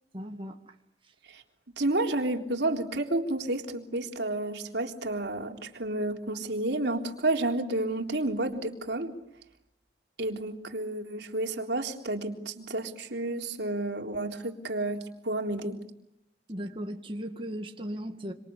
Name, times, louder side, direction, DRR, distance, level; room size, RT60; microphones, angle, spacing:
voice 1, 0.1-0.8 16.5-18.3, equal, 30° right, 4 dB, 2.1 m, -37 dB
voice 2, 1.8-9.1 10.2-15.8, right 2 dB, 70° right, 2 dB, 3.7 m, -31 dB
26.5 x 26.5 x 8.5 m, 0.78 s
head